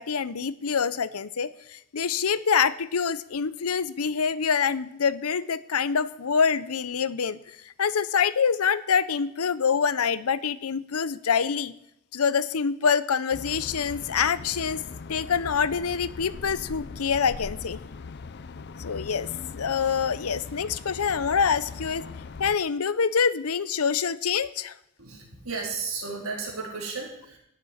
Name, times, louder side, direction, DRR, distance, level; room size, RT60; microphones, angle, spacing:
voice 1, 0.0-11.7 12.1-14.8 15.1-17.8 18.8-22.1 22.4-24.7, left 6 dB, 90° left, 16 dB, 0.7 m, -26 dB
sound 1, 13.3-22.6, left 4 dB, 50° left, 0.6 m, -40 dB
voice 2, 25.0-27.4, right 4 dB, 75° right, 0 dB, 4.0 m, -34 dB
12.5 x 7.3 x 9.3 m, 0.80 s
head